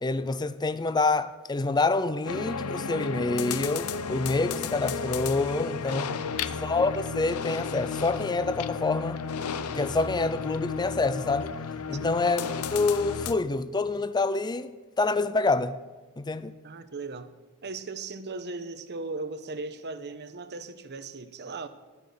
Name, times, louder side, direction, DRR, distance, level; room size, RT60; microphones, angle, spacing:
voice 1, 0.0-6.1 6.6-9.2 9.7-11.5 11.9-14.7 15.0-15.8 16.2-16.5, left 3 dB, 20° left, 0.5 m, -27 dB
sound 1, 2.2-13.3, left 5 dB, 85° left, 0.7 m, -33 dB
voice 2, 6.0-6.5 12.0-12.1 16.6-17.3 17.6-21.7, right 3 dB, 50° right, 1.0 m, -38 dB
14.5 x 11.5 x 6.9 m
head